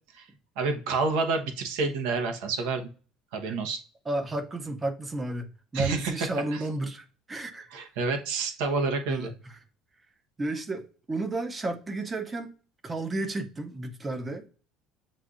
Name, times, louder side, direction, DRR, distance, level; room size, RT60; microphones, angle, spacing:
voice 1, 0.6-2.9 3.3-3.8 5.7-6.6 7.7-9.3, right 4 dB, 85° right, 1.0 m, -29 dB
voice 2, 4.1-5.5 5.7-7.7 9.1-9.6 10.4-12.5 12.8-14.4, right 2 dB, 15° right, 0.5 m, -32 dB
7.2 x 2.6 x 2.4 m
cardioid pair, 175°, 0 cm